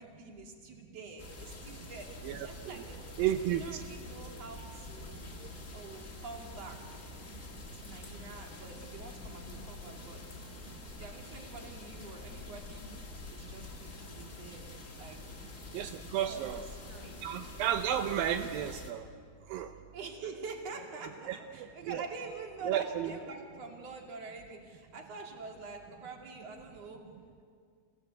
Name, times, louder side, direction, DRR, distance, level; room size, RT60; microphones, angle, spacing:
voice 1, 0.0-3.0 3.5-5.2 5.7-7.1 7.7-10.2 10.9-12.9 13.3-14.7 14.9-15.4 16.2-17.3 19.9-27.0, right 4 dB, 40° right, 2 dB, 3.0 m, -46 dB
sound 1, 1.2-18.9, left 2 dB, 40° left, 1.1 m, -46 dB
voice 2, 2.2-2.8 3.2-3.6 15.7-16.6 17.2-19.1 19.5-19.7 21.3-22.0 22.6-23.1, right 10 dB, 80° right, 7 dB, 2.1 m, -32 dB
27.5 x 17.5 x 8.3 m, 2.1 s
omnidirectional pair, 5.0 m